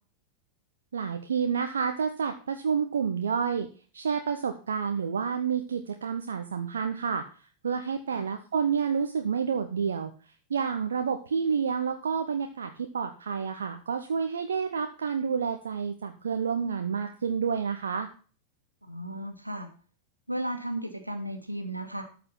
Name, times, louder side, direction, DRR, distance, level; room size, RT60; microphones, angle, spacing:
voice 1, 0.9-3.7 3.9-7.3 7.6-18.1, right 6 dB, 70° right, 6 dB, 0.9 m, -29 dB
voice 2, 18.8-19.7 20.3-22.0, right 1 dB, 85° right, 4 dB, 1.9 m, -35 dB
13.0 x 5.0 x 5.7 m, 0.39 s
figure-of-eight pair, 90°, 0 cm